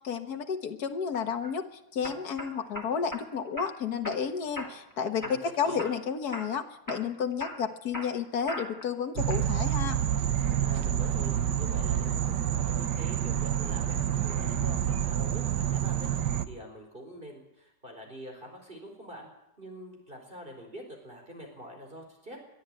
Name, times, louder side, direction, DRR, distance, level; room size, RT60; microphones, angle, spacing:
voice 1, 0.0-1.7 1.9-10.0, left 6 dB, 65° left, 6 dB, 1.9 m, -31 dB
sound 1, 1.1-1.5 2.0-3.3 3.6-4.2 4.6-4.9 5.2-6.0 6.3-6.6 6.9-8.9 9.3-9.8, equal, 10° left, 2.5 m, -40 dB
voice 2, 5.2-5.8 10.6-19.3 19.6-22.4, equal, 30° right, 2 dB, 4.7 m, -45 dB
sound 2, 9.2-16.5, right 10 dB, 85° right, 1.7 m, -28 dB
22.5 x 13.0 x 9.0 m, 0.84 s
omnidirectional pair, 1.8 m